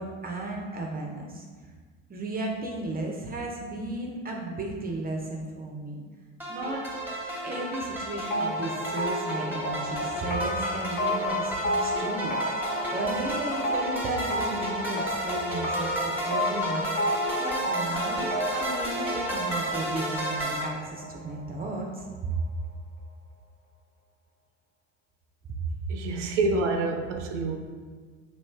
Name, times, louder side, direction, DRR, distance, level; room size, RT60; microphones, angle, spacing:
voice 1, 0.0-1.4 2.1-6.0 6.5-6.8 7.4-12.4 12.9-16.9 17.4-22.3 25.5-25.8, right 2 dB, 25° right, 0 dB, 0.6 m, -34 dB
sound 1, 6.4-20.6, equal, 5° right, 1.1 m, -33 dB
sound 2, 8.3-21.8, equal, 30° left, 0.8 m, -31 dB
voice 2, 25.9-27.6, right 3 dB, 90° right, 3 dB, 0.5 m, -27 dB
3.1 x 2.8 x 4.3 m, 1.5 s
hypercardioid pair, 70°, 35 cm